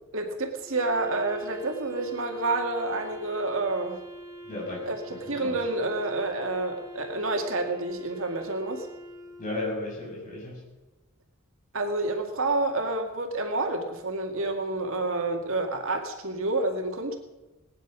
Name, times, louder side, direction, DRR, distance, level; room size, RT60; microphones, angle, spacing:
voice 1, 0.1-4.0 4.9-8.9 11.7-17.2, right 2 dB, 65° right, 3 dB, 2.2 m, -29 dB
Wind instrument woodwind instrument, 0.6-9.9, equal, 15° right, 3.2 m, -44 dB
voice 2, 4.4-5.6 9.4-10.6, left 2 dB, 35° left, -2 dB, 6.8 m, -35 dB
20.0 x 10.5 x 6.2 m, 1.1 s
head